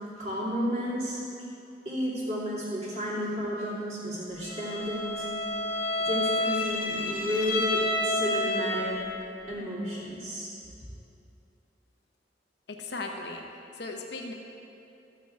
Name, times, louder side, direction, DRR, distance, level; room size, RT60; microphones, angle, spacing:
voice 1, 0.2-1.2 1.8-5.3 6.0-9.0 9.5-10.5, equal, 35° right, -7 dB, 2.8 m, -32 dB
Bowed string instrument, 4.4-9.1, left 2 dB, 50° left, 1.2 m, -30 dB
voice 2, 12.7-13.4 13.7-14.3, left 3 dB, 70° left, 2 dB, 0.9 m, -37 dB
13.0 x 8.6 x 4.6 m, 2.7 s
head